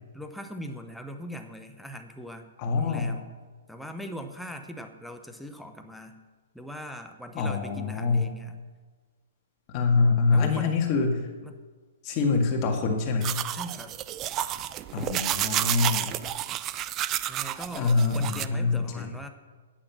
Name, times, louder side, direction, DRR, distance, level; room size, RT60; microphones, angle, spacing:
voice 1, 0.1-2.5 2.8-3.3 3.7-6.2 6.5-8.6 10.3-11.0 11.4-11.6 13.5-14.0 17.3-19.3, equal, ahead, 5 dB, 0.8 m, -40 dB
voice 2, 2.6-3.2 7.4-8.3 9.7-11.2 12.0-13.4 14.9-16.1 17.7-19.1, left 4 dB, 30° left, 2 dB, 1.9 m, -25 dB
sound 1, 13.2-18.5, right 13 dB, 25° right, 0.3 m, -30 dB
10.0 x 9.0 x 6.0 m, 1.4 s
hypercardioid pair, 155°, 0 cm